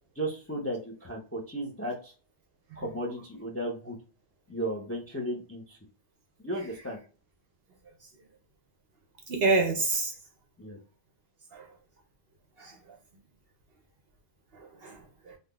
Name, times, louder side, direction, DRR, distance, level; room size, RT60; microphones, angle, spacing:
voice 1, 0.2-2.1 2.8-4.0 4.5-5.8 6.4-7.0 10.6-10.8, right 1 dB, 20° left, 0.4 m, -35 dB
voice 2, 9.3-10.1 11.5-11.7 12.6-12.8 14.5-15.4, right 3 dB, 60° right, 0.7 m, -28 dB
3.5 x 2.7 x 2.3 m
omnidirectional pair, 1.4 m